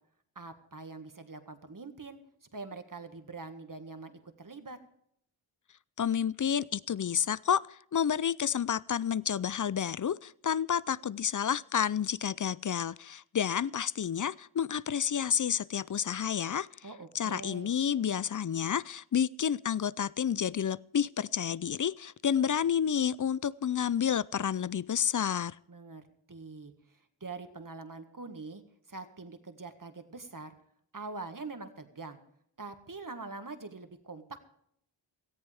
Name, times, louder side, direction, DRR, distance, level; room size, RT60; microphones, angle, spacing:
voice 1, 0.4-2.2 2.5-4.8 16.8-17.7 25.7-28.6 28.9-30.5 30.9-32.2 32.6-34.4, right 3 dB, 40° right, 1.9 m, -44 dB
voice 2, 6.0-16.7 17.1-25.6, left 8 dB, 40° left, 0.5 m, -30 dB
18.0 x 14.0 x 3.5 m
cardioid pair, 50°, 50 cm